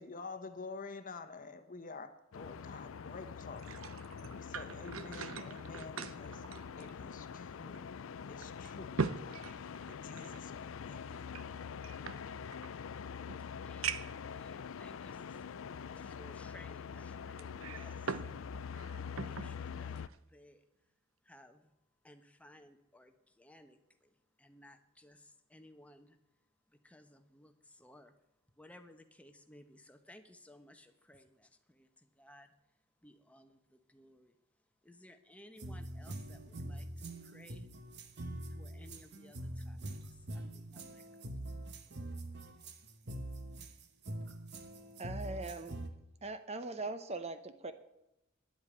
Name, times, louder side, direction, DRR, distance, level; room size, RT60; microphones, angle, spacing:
voice 1, 0.0-3.7 4.2-6.4 6.7-7.9 8.3-9.5 9.9-11.4, left 3 dB, 40° left, 9 dB, 1.0 m, -49 dB
sound 1, 2.3-20.1, left 6 dB, 75° left, 0.4 m, -45 dB
sound 2, 3.4-7.4 7.7-7.8 8.4-10.4 11.3-12.7 13.3-13.4 13.8-14.3 15.0-15.1 17.4-18.3 18.7-19.5 20.0-20.2, right 5 dB, 85° right, 0.7 m, -41 dB
voice 2, 13.6-18.2 18.7-20.6 21.2-21.7 22.0-26.2 26.7-28.1 28.6-32.5 33.0-34.4 34.8-37.7 38.4-41.7, left 1 dB, 5° left, 7 dB, 0.9 m, -59 dB
sound 3, 35.6-45.9, right 1 dB, 55° right, 1.2 m, -44 dB
voice 3, 45.0-45.8 46.2-47.7, right 2 dB, 30° right, 10 dB, 0.7 m, -41 dB
10.5 x 8.0 x 8.6 m, 0.87 s
head